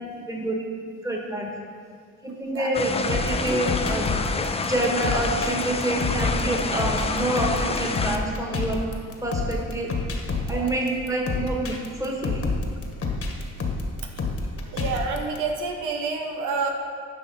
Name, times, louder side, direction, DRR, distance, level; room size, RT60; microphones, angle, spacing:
voice 1, 0.3-0.6 1.0-1.5 2.2-4.3 4.7-8.8 9.2-9.9 10.5-12.4, right 1 dB, 10° right, -1 dB, 1.5 m, -27 dB
sound 1, 2.7-8.2, left 4 dB, 20° left, 0.5 m, -28 dB
sound 2, 3.1-15.4, left 3 dB, 50° left, 1.3 m, -29 dB
voice 2, 14.7-16.7, right 4 dB, 90° right, 3 dB, 0.9 m, -28 dB
10.0 x 5.7 x 4.2 m, 2.2 s
cardioid pair, 90°, 30 cm